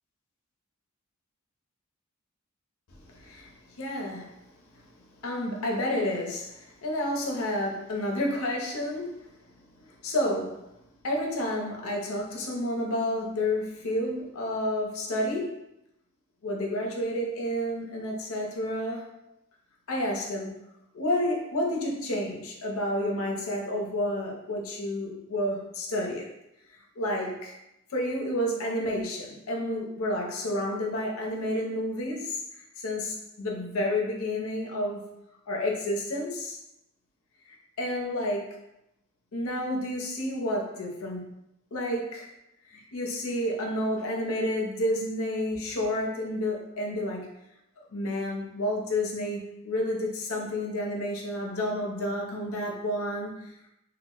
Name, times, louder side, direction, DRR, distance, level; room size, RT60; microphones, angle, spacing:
voice 1, 3.0-4.4 5.2-9.3 9.8-10.7 11.0-15.6 16.4-19.1 19.9-20.6 20.9-26.3 27.0-27.5 27.9-35.1 35.5-36.6 37.5-38.6 39.3-41.4 41.7-42.3 42.7-47.3 47.9-53.7, left 1 dB, 75° left, 0 dB, 0.6 m, -30 dB
2.2 x 2.0 x 3.6 m, 0.83 s
head